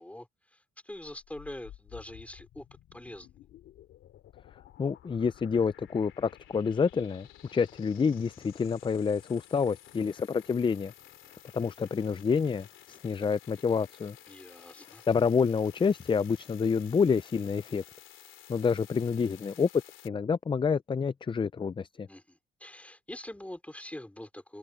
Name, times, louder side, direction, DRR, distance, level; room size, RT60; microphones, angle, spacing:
voice 1, 0.0-2.7 2.9-3.3 14.3-15.0 22.1-24.6, left 1 dB, 5° left, 4.5 m, -44 dB
sound 1, 0.9-20.1, left 12 dB, 80° left, 2.9 m, -53 dB
voice 2, 4.8-10.9 11.5-14.2 15.1-17.8 18.5-19.7 20.0-22.1, left 5 dB, 25° left, 0.5 m, -28 dB
cardioid pair, 90°, 20 cm